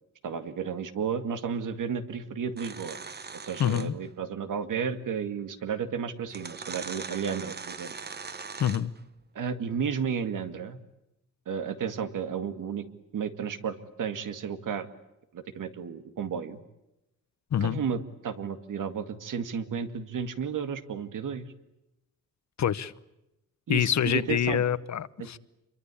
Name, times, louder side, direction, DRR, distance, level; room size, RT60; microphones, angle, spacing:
voice 1, 0.2-3.0 3.4-7.9 9.3-10.8 11.5-12.9 13.1-14.9 15.3-16.6 17.6-21.5 23.7-24.6 25.2-25.3, right 7 dB, 80° right, 9 dB, 2.2 m, -33 dB
sound 1, 2.6-4.1 5.4-5.5 6.3-9.0, right 5 dB, 30° right, 1.1 m, -40 dB
voice 2, 3.6-3.9 8.6-8.9 17.5-17.8 22.6-22.9 23.7-25.4, left 9 dB, 60° left, 16 dB, 1.0 m, -26 dB
27.5 x 23.5 x 8.5 m, 0.90 s
wide cardioid pair, 175°, 31 cm